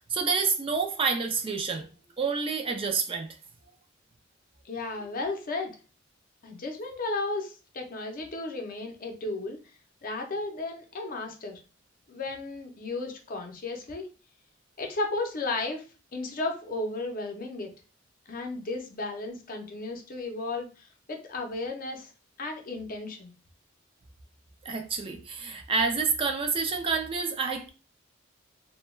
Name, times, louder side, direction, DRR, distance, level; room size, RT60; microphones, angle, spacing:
voice 1, 0.1-1.9 2.2-3.3 24.6-27.7, right 5 dB, 30° right, 0.3 m, -28 dB
voice 2, 4.6-5.8 6.4-9.6 10.0-11.6 12.1-14.1 14.8-15.8 16.1-17.7 18.3-22.1 22.4-23.3, left 2 dB, 45° left, 0.6 m, -34 dB
2.2 x 2.2 x 3.0 m
head